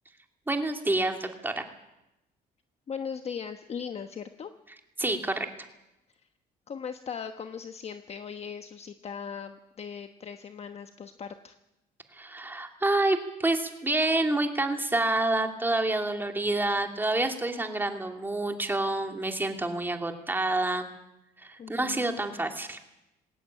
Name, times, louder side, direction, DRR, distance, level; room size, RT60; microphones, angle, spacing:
voice 1, 0.5-1.6 5.0-5.5 12.1-20.9 21.4-22.8, right 2 dB, 10° right, 4 dB, 2.7 m, -28 dB
voice 2, 2.9-4.5 6.7-11.5 21.6-22.1, left 7 dB, 40° left, 7 dB, 1.1 m, -39 dB
20.5 x 17.5 x 8.8 m, 0.92 s
cardioid pair, 110°, 17 cm